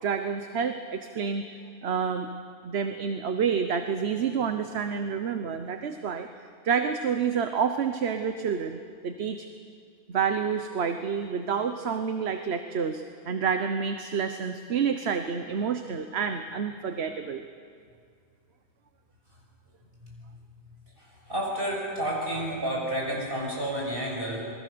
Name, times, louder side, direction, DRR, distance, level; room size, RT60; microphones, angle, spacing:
voice 1, 0.0-2.3 2.6-6.3 6.6-9.4 10.1-17.4, right 6 dB, 75° right, 7 dB, 1.2 m, -29 dB
voice 2, 21.3-24.4, right 1 dB, 60° right, -3 dB, 6.9 m, -30 dB
27.5 x 21.0 x 6.8 m, 2.2 s
omnidirectional pair, 1.1 m